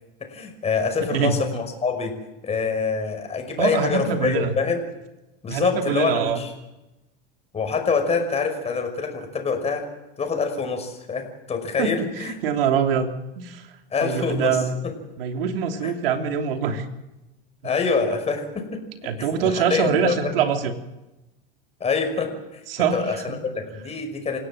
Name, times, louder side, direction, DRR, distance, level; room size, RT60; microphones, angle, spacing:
voice 1, 0.2-2.1 2.4-4.8 5.4-6.5 7.5-9.8 10.2-12.3 13.9-14.9 15.8-15.9 17.6-18.8 19.4-20.3 21.8-22.6 22.9-24.4, left 4 dB, 20° left, 4 dB, 5.6 m, -25 dB
voice 2, 3.6-4.5 5.5-6.5 11.8-13.1 13.4-13.7 14.0-14.8 15.2-16.8 19.0-20.7 22.7-23.4, right 7 dB, 75° right, 6 dB, 3.3 m, -24 dB
27.0 x 17.0 x 7.5 m, 0.98 s
hypercardioid pair, 110°, 29 cm